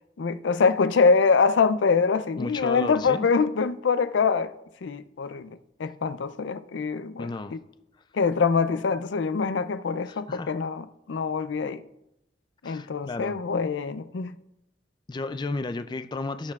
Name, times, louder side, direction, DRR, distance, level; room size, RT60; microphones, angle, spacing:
voice 1, 0.2-4.5 4.8-7.6 8.1-11.8 12.6-14.4, left 5 dB, 85° left, 0.4 m, -24 dB
voice 2, 2.4-3.3 7.2-7.6 10.1-10.5 12.6-13.4 15.1-16.5, left 3 dB, 25° left, 0.3 m, -33 dB
17.0 x 6.7 x 2.4 m
head